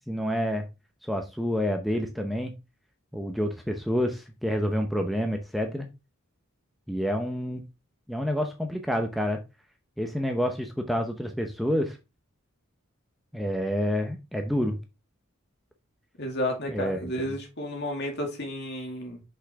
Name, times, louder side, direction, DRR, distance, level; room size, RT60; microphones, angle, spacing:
voice 1, 0.1-0.7 1.1-2.5 3.1-5.9 6.9-7.6 8.1-9.4 10.0-12.0 13.3-14.8 16.7-17.0, equal, ahead, 0.7 m, -28 dB
voice 2, 16.2-19.2, left 1 dB, 55° left, 2.2 m, -32 dB
6.2 x 5.5 x 3.5 m
head